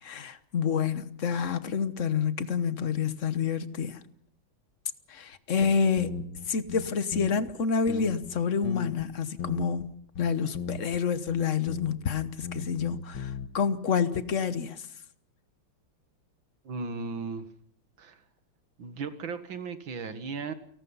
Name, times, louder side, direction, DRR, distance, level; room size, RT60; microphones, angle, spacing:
voice 1, 0.0-4.0 5.1-6.1 6.5-9.9 10.2-14.8, left 6 dB, 45° left, 1.3 m, -28 dB
sound 1, 5.3-5.4 5.6-7.5 7.9-9.1 9.4-9.9 10.1-11.0 11.3-12.1 12.4-13.5, left 6 dB, 80° left, 2.2 m, -37 dB
voice 2, 16.6-17.4 18.0-18.2 18.8-20.5, right 4 dB, 75° right, 2.5 m, -36 dB
29.5 x 18.5 x 5.6 m
omnidirectional pair, 2.1 m